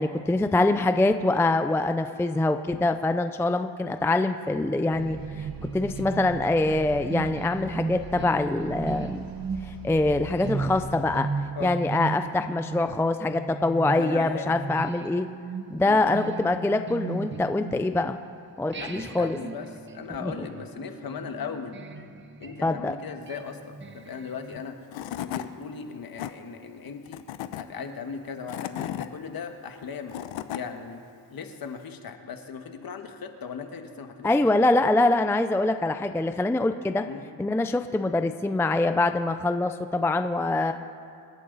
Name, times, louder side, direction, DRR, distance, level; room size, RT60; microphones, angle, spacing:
voice 1, 0.0-5.5 5.7-9.2 9.7-11.3 11.6-15.3 15.7-18.2 18.6-19.4 20.2-20.5 22.6-22.9 34.2-37.1 37.4-40.7, left 2 dB, 5° left, 8 dB, 0.4 m, -24 dB
sound 1, 4.9-11.2, right 4 dB, 50° right, 1.3 m, -41 dB
sound 2, 5.2-18.3 18.7-24.6, right 4 dB, 25° right, 1.0 m, -36 dB
voice 2, 14.0-14.5 15.8-16.3 18.7-19.7 19.9-21.8 22.4-24.7 25.2-27.2 27.5-30.2 30.5-31.0 31.3-34.4 37.0-37.2, left 6 dB, 50° left, 6 dB, 1.6 m, -38 dB
Tools / Wood, 24.6-24.7 24.9-25.5 25.9-26.3 27.1-27.6 28.3-29.1 29.8-30.6, left 12 dB, 85° left, 0.9 m, -34 dB
27.0 x 11.0 x 4.0 m, 2.5 s
cardioid pair, 105°, 45 cm